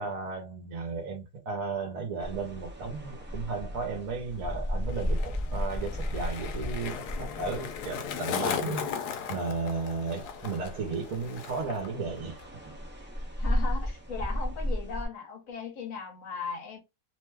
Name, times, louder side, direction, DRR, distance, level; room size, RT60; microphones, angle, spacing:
voice 1, 0.0-8.9 9.3-12.4, right 4 dB, 65° right, 1.1 m, -34 dB
sound 1, 2.2-8.3 8.9-15.1, equal, 10° right, 0.5 m, -35 dB
Skateboard, 4.3-11.9 12.1-12.6, left 7 dB, 85° left, 1.2 m, -37 dB
voice 2, 13.4-16.8, left 5 dB, 60° left, 1.3 m, -38 dB
3.0 x 2.1 x 3.3 m
omnidirectional pair, 1.7 m